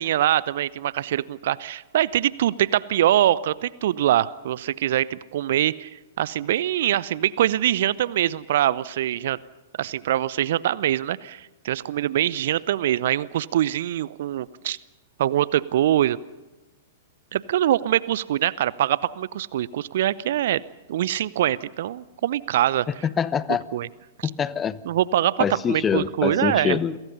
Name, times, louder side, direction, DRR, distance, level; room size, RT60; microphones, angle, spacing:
voice 1, 0.0-5.9 6.2-9.4 9.8-14.8 15.2-16.2 17.3-20.6 20.9-22.9 23.7-23.9 24.2-24.3 24.8-26.8, right 12 dB, 55° right, 20 dB, 0.7 m, -23 dB
voice 2, 23.0-23.6 24.2-24.8 25.4-27.0, left 7 dB, 20° left, 17 dB, 1.0 m, -24 dB
29.5 x 23.0 x 5.6 m, 1.1 s
figure-of-eight pair, 105°, 0 cm